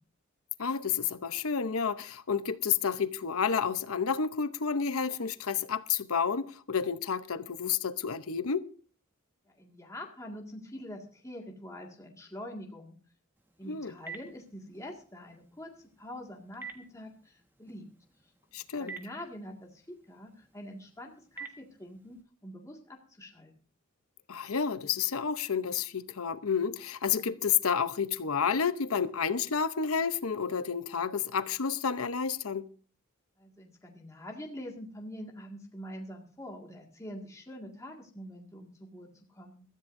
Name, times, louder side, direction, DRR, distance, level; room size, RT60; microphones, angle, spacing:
voice 1, 0.6-8.7 13.7-13.9 18.5-18.9 24.3-32.7, left 6 dB, 85° left, 0.8 m, -30 dB
voice 2, 9.6-13.0 13.6-15.7 16.0-17.9 18.8-23.5 33.4-39.6, equal, 15° left, 2.0 m, -45 dB
Telephone, 13.4-22.2, right 5 dB, 10° right, 1.5 m, -51 dB
22.5 x 14.0 x 2.6 m
head